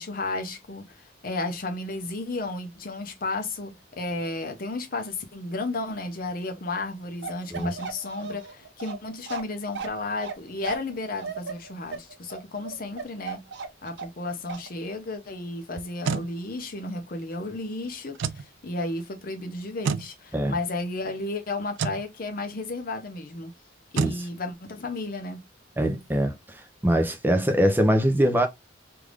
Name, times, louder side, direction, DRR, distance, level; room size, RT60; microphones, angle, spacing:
voice 1, 0.0-13.5 13.8-23.5 23.9-25.5, left 2 dB, 50° left, 0.7 m, -33 dB
Bark, 7.2-14.2 14.5-14.7, right 5 dB, 65° right, 0.8 m, -36 dB
sound 1, 15.8-16.3 18.1-18.5 19.8-20.1 21.7-22.0 23.9-24.2, right 6 dB, 80° right, 0.3 m, -28 dB
voice 2, 25.8-28.5, equal, 10° right, 0.4 m, -23 dB
3.5 x 2.5 x 3.1 m
head